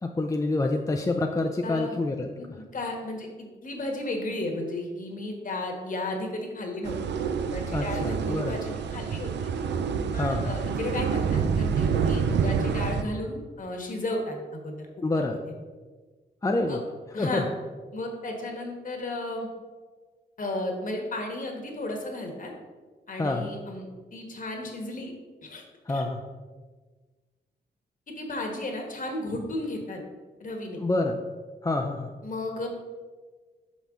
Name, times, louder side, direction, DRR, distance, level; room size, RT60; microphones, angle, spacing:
voice 1, 0.0-2.3 7.7-8.6 10.2-10.6 15.0-15.4 16.4-16.8 17.2-17.4 23.2-23.5 25.9-26.2 30.8-31.2 31.6-32.1, left 2 dB, 20° left, 3 dB, 0.4 m, -27 dB
voice 2, 1.6-2.0 2.6-3.3 3.6-9.5 10.1-14.9 16.7-16.8 17.1-17.5 17.9-19.5 20.4-22.5 23.1-25.1 25.4-25.6 25.9-26.0 28.1-30.0 30.4-30.8 32.2-32.7, left 2 dB, 50° left, 2 dB, 1.4 m, -34 dB
sound 1, 6.8-13.0, right 6 dB, 80° right, 0.5 m, -27 dB
5.9 x 5.5 x 3.7 m, 1.4 s
cardioid pair, 80°, 18 cm